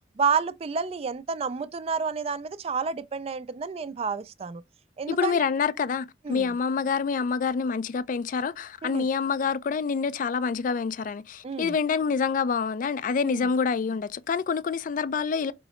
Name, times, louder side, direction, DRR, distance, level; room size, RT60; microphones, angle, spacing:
voice 1, 0.2-4.6 5.0-5.4 6.2-6.5 8.8-9.1 11.4-11.7 13.2-13.5, right 5 dB, 35° right, 0.3 m, -30 dB
voice 2, 5.1-15.5, left 5 dB, 45° left, 0.3 m, -27 dB
4.7 x 3.0 x 3.0 m
head